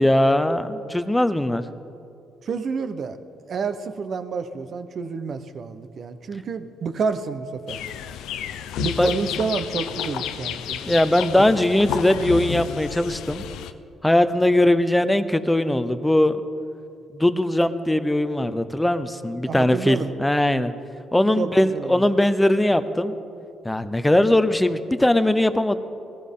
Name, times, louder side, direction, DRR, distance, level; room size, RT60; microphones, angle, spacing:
voice 1, 0.0-1.6 9.0-9.1 10.8-13.4 14.0-16.4 17.2-20.7 21.1-23.1 23.6-25.8, left 1 dB, 10° left, 12 dB, 0.7 m, -20 dB
voice 2, 2.5-3.2 3.5-7.8 8.8-10.9 19.5-20.1 21.4-22.1, right 5 dB, 55° right, 10 dB, 0.9 m, -29 dB
sound 1, 7.7-13.7, left 9 dB, 90° left, 0.6 m, -31 dB
19.5 x 14.5 x 3.8 m, 2.6 s
cardioid pair, 90°, 0 cm